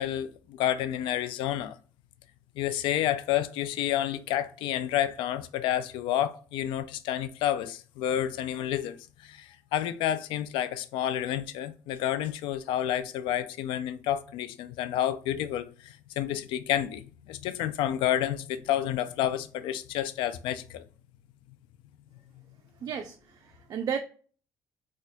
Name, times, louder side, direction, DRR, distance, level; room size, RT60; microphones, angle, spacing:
voice 1, 0.0-1.8 2.6-20.8, left 11 dB, 85° left, 0.3 m, -30 dB
voice 2, 22.8-24.0, right 7 dB, 50° right, 0.4 m, -33 dB
4.2 x 2.4 x 2.6 m
cardioid pair, 110°, 8 cm